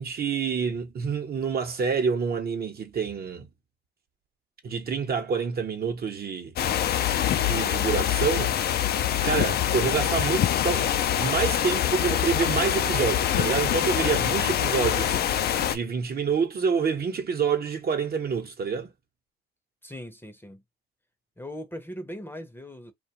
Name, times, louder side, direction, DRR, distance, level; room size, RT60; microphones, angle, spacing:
voice 1, 0.0-3.5 4.6-6.5 7.4-8.5 9.2-15.2 15.7-18.9, right 6 dB, 50° right, 0.9 m, -27 dB
sound 1, 6.6-15.8, left 10 dB, 55° left, 0.4 m, -25 dB
voice 2, 19.8-20.6 21.4-22.9, equal, 10° left, 0.6 m, -39 dB
2.5 x 2.2 x 2.9 m
cardioid pair, 90°, 20 cm